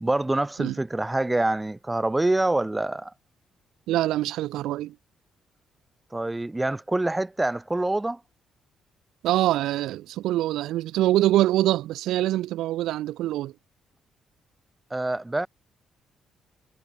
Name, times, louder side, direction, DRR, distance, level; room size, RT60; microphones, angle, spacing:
voice 1, 0.0-3.1 6.1-8.2 14.9-15.5, right 2 dB, 15° right, 1.0 m, -25 dB
voice 2, 3.9-4.9 9.2-13.5, right 14 dB, 85° right, 0.9 m, -24 dB
cardioid pair, 90°, 0 cm